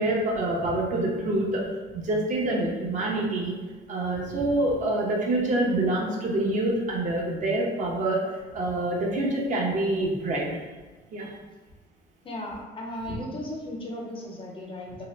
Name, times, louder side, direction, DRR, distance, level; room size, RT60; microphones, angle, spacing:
voice 1, 0.0-1.7 1.9-3.5 3.9-8.2 8.5-10.5 11.1-11.3 13.1-13.2, right 2 dB, 45° right, -3 dB, 0.7 m, -26 dB
voice 2, 12.2-15.1, left 1 dB, 30° left, -1 dB, 0.5 m, -36 dB
2.8 x 2.0 x 3.0 m, 1.3 s
cardioid pair, 110°, 17 cm